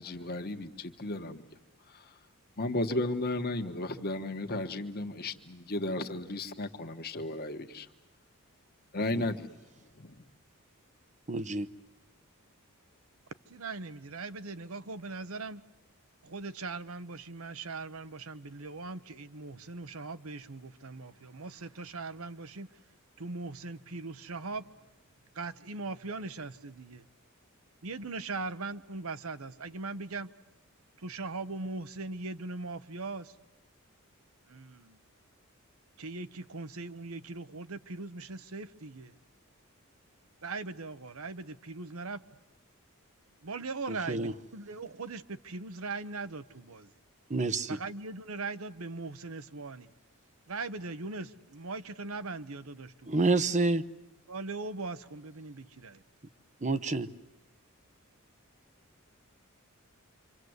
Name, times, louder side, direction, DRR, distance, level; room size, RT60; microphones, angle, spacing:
voice 1, 0.0-1.4 1.9-2.1 2.6-7.9 8.9-9.5 9.9-10.2, left 2 dB, 45° left, 1.5 m, -34 dB
voice 2, 11.3-11.7 44.1-44.3 47.3-47.8 53.1-53.9 56.6-57.1, right 3 dB, 35° right, 0.9 m, -28 dB
voice 3, 13.5-15.6 16.2-22.7 23.2-24.6 25.3-27.1 27.8-30.3 31.0-33.3 34.5-35.0 36.0-39.2 40.4-42.2 43.4-46.9 47.7-49.9 50.5-53.2 54.3-56.0, right 3 dB, 70° right, 1.0 m, -40 dB
27.5 x 26.0 x 8.1 m
head